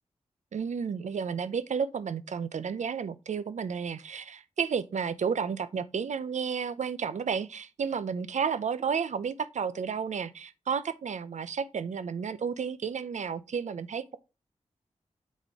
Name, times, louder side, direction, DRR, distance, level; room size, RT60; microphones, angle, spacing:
voice 1, 0.5-14.2, right 6 dB, 75° right, 0.6 m, -32 dB
8.1 x 4.3 x 3.7 m
wide cardioid pair, 120°, 12 cm